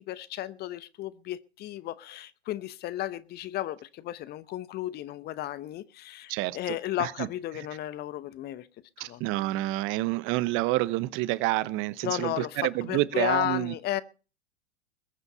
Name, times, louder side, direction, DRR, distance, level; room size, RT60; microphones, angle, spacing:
voice 1, 0.0-8.7 9.1-9.2 12.0-14.0, left 14 dB, 30° left, 0.9 m, -34 dB
voice 2, 6.3-7.3 7.5-7.7 9.0-13.7, right 18 dB, 40° right, 0.9 m, -29 dB
21.5 x 8.1 x 5.5 m
figure-of-eight pair, 90°, 32 cm